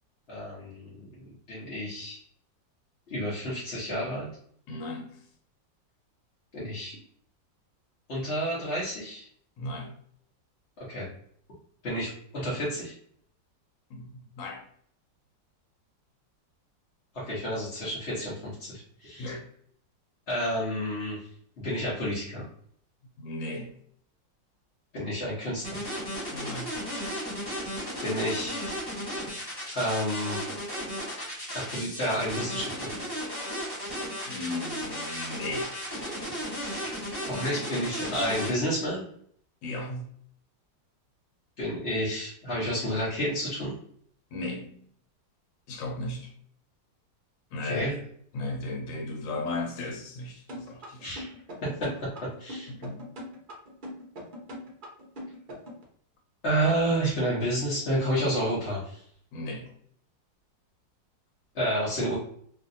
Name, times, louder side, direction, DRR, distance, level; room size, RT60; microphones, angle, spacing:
voice 1, 0.3-1.0 1.5-2.2 3.1-4.3 6.5-7.0 8.1-9.3 10.8-11.1 11.8-12.9 17.1-19.4 20.3-21.2 21.6-22.4 24.9-25.8 28.0-28.6 29.7-30.4 31.5-32.9 36.7-36.9 37.2-39.1 41.6-43.7 47.6-47.9 51.0-51.3 51.6-51.9 52.2-52.7 56.4-59.0 61.5-62.1, equal, 45° left, -8 dB, 0.9 m, -30 dB
voice 2, 4.7-5.2 9.6-9.9 13.9-14.6 19.2-19.4 23.2-23.8 26.3-26.7 34.2-35.7 39.6-40.1 44.3-44.8 45.7-46.3 47.5-47.9 48.3-51.2 52.7-53.0 59.3-59.7, left 2 dB, 85° left, 2 dB, 1.4 m, -36 dB
sound 1, 25.6-38.5, equal, 15° left, 1.1 m, -34 dB
sound 2, 50.5-55.8, equal, 55° right, 0.5 m, -41 dB
2.9 x 2.6 x 2.6 m, 0.62 s
omnidirectional pair, 2.0 m